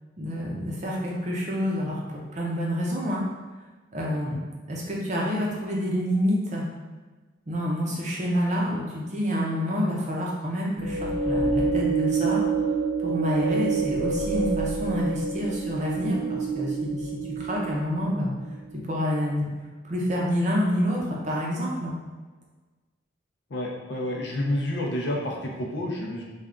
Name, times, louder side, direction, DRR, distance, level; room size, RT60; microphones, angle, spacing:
voice 1, 0.2-3.2 3.9-4.4 4.7-6.7 7.5-12.4 13.0-18.3 18.7-19.4 19.9-21.9, equal, 35° right, -3 dB, 0.6 m, -28 dB
sound 1, 10.8-18.1, right 4 dB, 80° right, 0.5 m, -27 dB
voice 2, 23.5-26.2, left 1 dB, 60° left, -1 dB, 0.6 m, -29 dB
3.4 x 2.3 x 3.7 m, 1.3 s
head